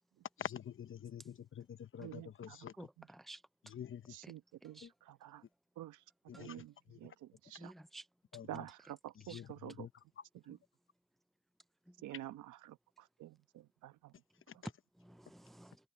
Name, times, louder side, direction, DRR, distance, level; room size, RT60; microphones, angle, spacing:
voice 1, 0.4-2.9 3.6-4.2 4.8-4.9 6.3-6.6 6.9-7.0 8.3-8.6 9.3-9.9 14.5-14.6, left 8 dB, 45° left, 0.9 m, -47 dB
voice 2, 2.0-2.7 3.0-3.1 4.1-5.4 5.8-6.0 6.3-7.7 8.4-9.9 10.3-10.6 12.0-14.1, right 13 dB, 85° right, 1.3 m, -49 dB
voice 3, 2.8-3.4 4.2-4.3 4.8-4.9 7.6-8.0 9.3-9.4 15.0-15.8, right 1 dB, ahead, 0.5 m, -53 dB
open air
cardioid pair, 90°, 30 cm